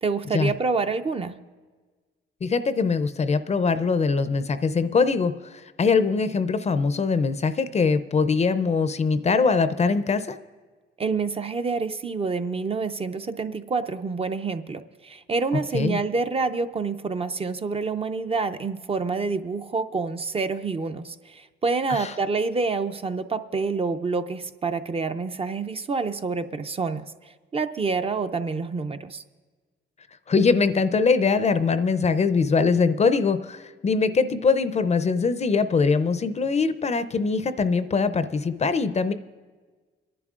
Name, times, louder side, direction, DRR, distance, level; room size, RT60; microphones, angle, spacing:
voice 1, 0.0-1.4 11.0-27.0 27.5-29.2, right 4 dB, 30° right, 8 dB, 0.5 m, -27 dB
voice 2, 2.4-10.4 15.7-16.0 21.9-22.2 30.3-39.1, left 4 dB, 35° left, 12 dB, 0.5 m, -22 dB
29.5 x 11.0 x 2.4 m, 1.4 s
cardioid pair, 90°, 20 cm